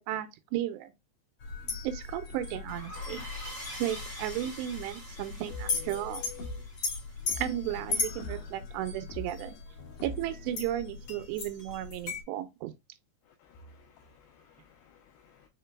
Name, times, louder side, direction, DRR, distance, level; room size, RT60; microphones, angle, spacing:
voice 1, 0.1-0.9 1.8-3.2 3.8-6.3 7.4-9.6 10.0-12.7, right 13 dB, 90° right, 2.7 m, -34 dB
sound 1, 1.4-12.2, left 4 dB, 45° left, 2.5 m, -38 dB
sound 2, 2.7-8.0, equal, 15° right, 0.7 m, -45 dB
sound 3, 5.5-6.8 7.3-8.6 9.1-10.6, left 2 dB, 65° left, 2.0 m, -43 dB
voice 2, 13.4-15.5, left 2 dB, 80° left, 2.2 m, -58 dB
5.8 x 3.8 x 2.2 m
omnidirectional pair, 4.9 m